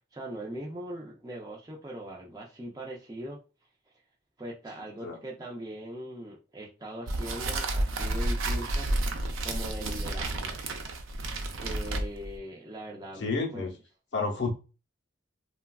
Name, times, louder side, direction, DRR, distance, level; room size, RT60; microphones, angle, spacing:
voice 1, 0.1-3.4 4.4-8.9 9.4-10.5 11.6-13.7, right 1 dB, 20° right, -2 dB, 0.4 m, -40 dB
sound 1, 7.1-12.4, right 2 dB, 90° right, 0.5 m, -31 dB
voice 2, 13.2-13.7 14.1-14.5, left 4 dB, 60° left, 0 dB, 0.7 m, -30 dB
3.2 x 2.3 x 2.2 m, 0.32 s
head